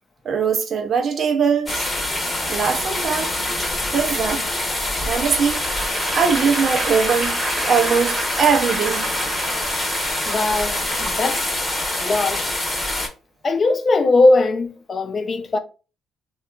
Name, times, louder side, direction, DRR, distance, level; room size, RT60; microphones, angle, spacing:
voice 1, 0.2-1.9 2.5-3.3 3.9-4.5 5.1-5.7 6.1-7.4 7.6-9.1, right 6 dB, 50° right, 0.5 m, -21 dB
sound 1, 1.7-13.1, left 1 dB, 15° left, 0.9 m, -25 dB
Applause / Crowd, 5.3-11.7, right 2 dB, 30° right, 0.8 m, -31 dB
voice 2, 10.3-11.4 12.0-12.5 13.4-15.6, left 2 dB, 40° left, 0.5 m, -19 dB
2.8 x 2.2 x 2.3 m
supercardioid pair, 75°, 0 cm